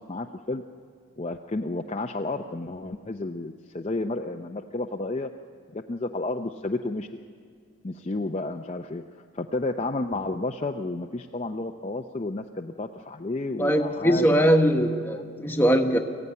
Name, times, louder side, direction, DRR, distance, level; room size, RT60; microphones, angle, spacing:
voice 1, 0.1-0.6 1.2-5.3 5.7-7.1 7.8-9.0 9.3-14.6 15.1-15.2, left 2 dB, 30° left, 3 dB, 0.5 m, -31 dB
voice 2, 13.6-16.0, equal, 10° left, 4 dB, 1.1 m, -21 dB
23.0 x 15.0 x 9.6 m, 2.1 s
head